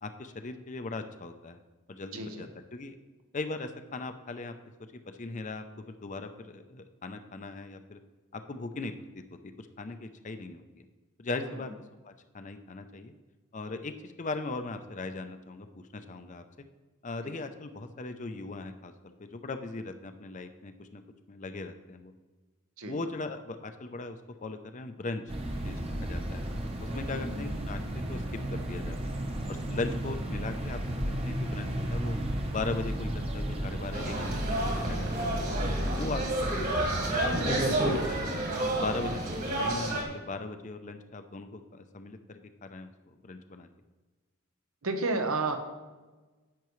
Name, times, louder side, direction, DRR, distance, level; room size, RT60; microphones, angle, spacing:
voice 1, 0.0-1.6 1.9-2.9 3.3-4.5 5.2-8.0 8.3-10.8 11.2-11.7 12.0-13.1 13.5-16.4 17.0-21.0 21.3-22.1 22.8-25.2 25.6-26.4 26.8-28.2 28.5-29.2 29.5-32.2 32.5-35.0 35.4-35.5 35.9-36.7 37.1-38.4 38.8-39.2 39.6-43.7, left 3 dB, 35° left, 8 dB, 0.5 m, -39 dB
voice 2, 2.1-2.5 17.2-17.3 22.8-23.0 27.1-27.5 44.8-45.6, right 3 dB, 80° right, 6 dB, 1.0 m, -31 dB
sound 1, 25.3-38.2, right 1 dB, 25° right, 0.9 m, -34 dB
sound 2, 33.9-40.0, right 1 dB, 40° right, 1.8 m, -30 dB
10.5 x 8.0 x 3.1 m, 1.2 s
head